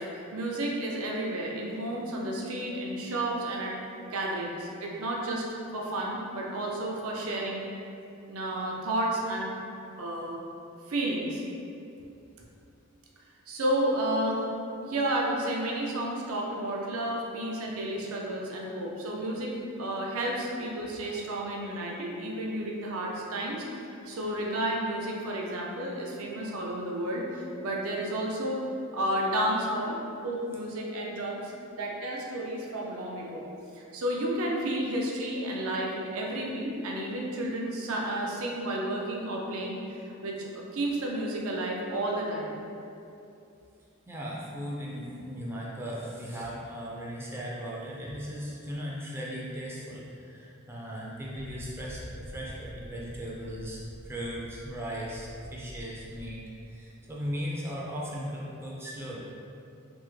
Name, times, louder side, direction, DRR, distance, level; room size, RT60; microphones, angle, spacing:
voice 1, 0.0-3.8 4.0-5.4 5.7-7.6 8.3-9.5 10.0-10.4 10.9-11.4 13.5-14.4 14.8-28.6 28.9-30.0 30.2-33.5 33.7-42.6, right 1 dB, 75° right, -2 dB, 0.5 m, -31 dB
voice 2, 44.1-59.2, equal, 10° right, -5 dB, 0.4 m, -37 dB
sound 1, 51.3-56.4, equal, 60° right, 1.0 m, -46 dB
3.4 x 2.0 x 3.1 m, 2.7 s
head